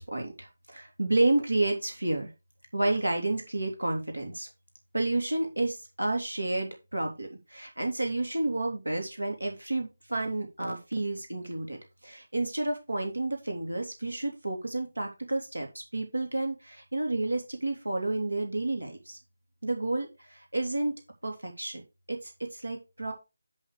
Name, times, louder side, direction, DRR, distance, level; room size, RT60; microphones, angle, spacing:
voice 1, 0.0-2.3 2.7-4.5 4.9-15.7 15.9-19.2 19.6-20.9 21.2-21.8 22.1-23.1, right 2 dB, 85° right, 3 dB, 3.1 m, -30 dB
11.0 x 4.5 x 4.9 m, 0.26 s
figure-of-eight pair, 160°, 0 cm